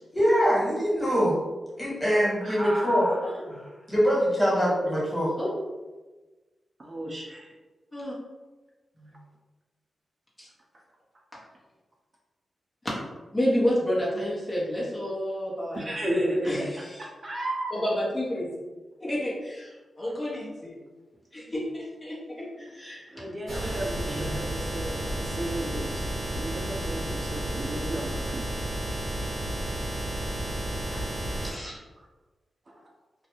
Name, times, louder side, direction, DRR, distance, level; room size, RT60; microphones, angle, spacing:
voice 1, 0.1-1.4 1.8-3.1 3.5-3.6 3.9-5.3, equal, 10° left, -6 dB, 1.4 m, -23 dB
voice 2, 2.4-3.3 6.8-7.5 15.7-16.7 17.0-17.7 23.1-28.5 29.4-29.6 30.9-31.2 32.0-32.1 32.7-32.8, right 1 dB, 45° right, -2 dB, 0.5 m, -33 dB
voice 3, 13.3-15.8 16.4-16.9 17.7-18.5 19.0-20.8 21.3-23.3 23.5-23.7 24.1-24.3 31.4-31.8, equal, 30° left, -6 dB, 0.8 m, -30 dB
sound 1, 23.5-31.5, right 1 dB, 70° right, 0.9 m, -32 dB
2.3 x 2.1 x 2.9 m, 1.2 s
supercardioid pair, 45°, 0 cm